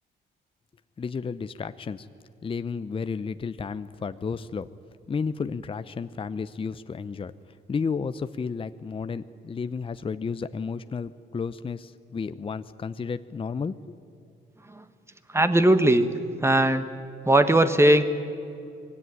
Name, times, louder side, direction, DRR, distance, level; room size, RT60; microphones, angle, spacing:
voice 1, 1.0-2.1 2.4-4.7 5.1-7.3 7.7-14.0, left 5 dB, 25° left, 12 dB, 0.6 m, -32 dB
voice 2, 15.3-16.1 16.4-16.8 17.2-18.0, right 1 dB, 15° right, 10 dB, 1.5 m, -19 dB
22.0 x 17.0 x 9.8 m, 2.6 s
cardioid pair, 90°, 20 cm